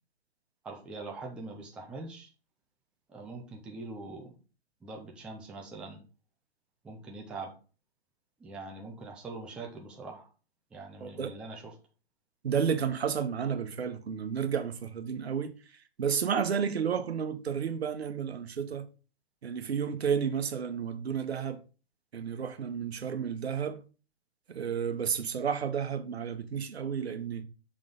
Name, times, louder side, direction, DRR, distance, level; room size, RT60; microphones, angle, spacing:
voice 1, 0.6-2.3 3.1-4.3 4.8-6.0 6.8-7.5 8.4-10.3 10.7-11.7, right 3 dB, 5° right, 0.4 m, -43 dB
voice 2, 11.0-11.3 12.4-15.5 16.0-18.9 19.4-21.6 22.1-23.8 24.5-27.4, right 7 dB, 80° right, 1.1 m, -31 dB
6.6 x 3.8 x 3.8 m
hypercardioid pair, 140°, 31 cm